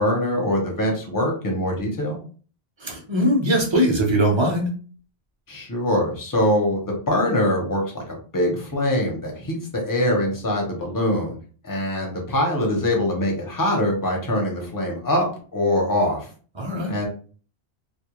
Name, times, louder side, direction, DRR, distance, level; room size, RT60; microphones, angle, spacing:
voice 1, 0.0-2.2 5.5-11.4 11.6-15.3 15.5-16.3 16.9-17.1, left 1 dB, 25° left, 0 dB, 0.6 m, -23 dB
voice 2, 2.8-4.7 16.6-16.9, equal, 35° right, 0 dB, 0.5 m, -21 dB
2.3 x 2.1 x 2.9 m, 0.40 s
omnidirectional pair, 1.1 m